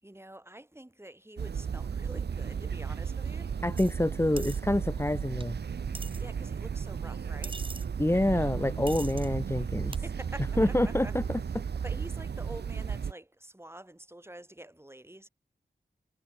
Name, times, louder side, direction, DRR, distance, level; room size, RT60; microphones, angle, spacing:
voice 1, 0.0-3.6 6.2-7.6 9.8-11.1 11.7-15.3, right 1 dB, 15° right, 7.2 m, -47 dB
sound 1, 1.4-13.1, right 6 dB, 85° right, 0.7 m, -34 dB
voice 2, 3.6-5.6 8.0-9.9 10.6-11.6, left 1 dB, 15° left, 2.4 m, -27 dB
sound 2, 3.8-3.9 4.4-4.6 5.4-5.5 5.9-6.2 7.4-7.9 8.9-9.3 9.9-10.0, right 2 dB, 30° right, 2.3 m, -42 dB
wide cardioid pair, 80°, 17 cm